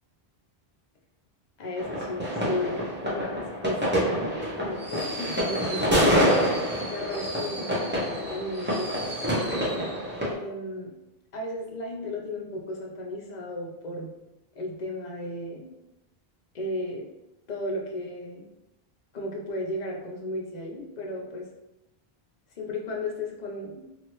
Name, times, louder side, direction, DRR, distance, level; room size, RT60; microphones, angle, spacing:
voice 1, 1.6-3.8 4.6-6.4 6.9-7.9 8.3-9.3 10.2-10.9 11.3-14.1 14.5-15.7 16.5-17.0 17.5-18.5 19.1-21.5 22.6-23.8, left 1 dB, 50° left, -1 dB, 0.7 m, -34 dB
sound 1, 1.8-10.3, equal, 15° right, 0.6 m, -27 dB
2.8 x 2.5 x 3.0 m, 0.93 s
omnidirectional pair, 1.0 m